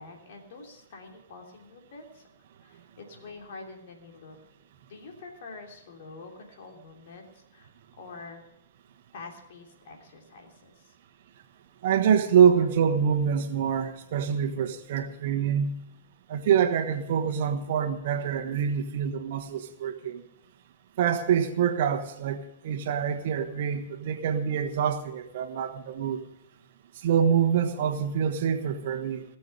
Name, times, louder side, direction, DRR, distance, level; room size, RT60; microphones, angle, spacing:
voice 1, 0.0-2.2 2.6-4.4 4.8-7.7 8.0-8.4 9.1-10.9, left 3 dB, 60° left, 2 dB, 3.1 m, -46 dB
voice 2, 11.8-15.8 16.3-20.2 21.0-26.2 27.0-29.2, right 8 dB, 60° right, 7 dB, 1.3 m, -25 dB
18.5 x 7.1 x 6.8 m, 0.82 s
hypercardioid pair, 110°, 0 cm